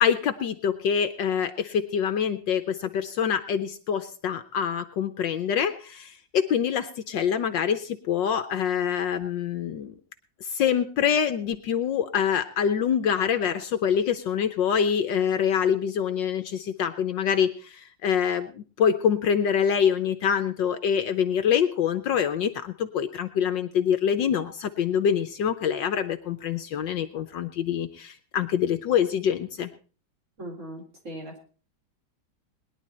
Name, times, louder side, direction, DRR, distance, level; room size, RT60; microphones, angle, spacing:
voice 1, 0.0-9.9 10.5-29.7, left 8 dB, 65° left, 9 dB, 1.4 m, -25 dB
voice 2, 30.4-31.4, right 1 dB, 35° right, 0 dB, 4.3 m, -39 dB
20.0 x 11.0 x 4.2 m, 0.37 s
omnidirectional pair, 2.2 m